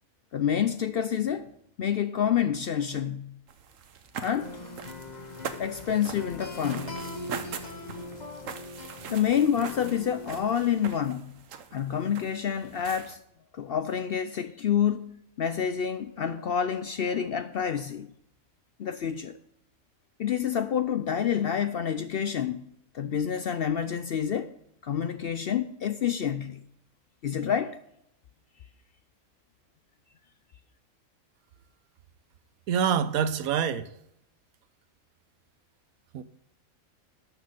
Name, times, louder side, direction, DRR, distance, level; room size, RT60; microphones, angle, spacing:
voice 1, 0.3-1.5 1.8-3.3 4.2-4.5 5.6-7.0 9.1-11.3 11.7-13.2 13.5-18.1 18.8-19.4 20.2-22.6 22.9-24.5 24.8-26.6 27.2-27.8, left 8 dB, 65° left, 0.6 m, -28 dB
sound 1, 3.5-13.2, right 7 dB, 70° right, 1.3 m, -42 dB
sound 2, 4.4-10.5, left 2 dB, 30° left, 1.3 m, -41 dB
voice 2, 32.7-33.9 36.1-36.2, right 8 dB, 85° right, 1.2 m, -26 dB
12.5 x 6.6 x 5.1 m
omnidirectional pair, 1.4 m